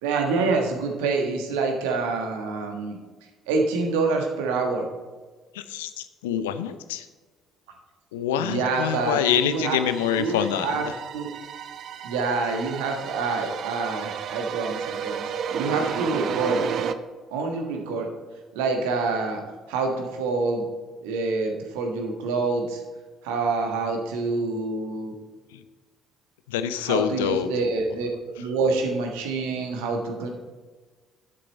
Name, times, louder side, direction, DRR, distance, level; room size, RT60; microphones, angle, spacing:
voice 1, 0.0-3.0 3.5-4.9 8.4-9.2 9.4-9.8 10.2-10.8 11.1-11.3 12.0-15.3 15.5-16.6 17.3-18.1 18.5-19.4 19.7-20.7 21.0-22.8 23.2-25.1 26.9-28.1 28.4-30.3, right 4 dB, 70° right, 2 dB, 1.5 m, -26 dB
voice 2, 5.5-7.1 8.1-10.9 25.5-25.6 26.5-27.5, left 9 dB, 75° left, 12 dB, 0.5 m, -26 dB
sound 1, 8.7-16.9, right 7 dB, 50° right, 0.5 m, -32 dB
11.0 x 7.6 x 4.2 m, 1.4 s
figure-of-eight pair, 50°, 0 cm